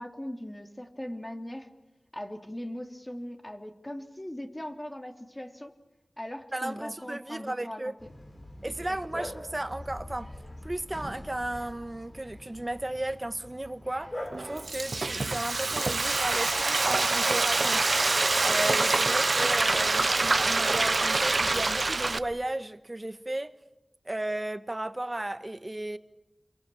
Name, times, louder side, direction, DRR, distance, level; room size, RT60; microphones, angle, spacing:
voice 1, 0.0-1.7 2.1-5.7 6.2-7.9 8.6-8.8 9.1-9.3, left 1 dB, 20° left, 2.9 m, -40 dB
voice 2, 6.5-7.9 8.6-10.3 10.6-23.5 24.0-26.0, right 1 dB, 30° right, 1.4 m, -34 dB
Bark, 8.0-22.3, left 1 dB, 45° left, 5.2 m, -45 dB
Frying (food), 14.3-22.2, right 3 dB, 65° right, 0.8 m, -25 dB
28.5 x 23.0 x 7.1 m
wide cardioid pair, 45°, 0 cm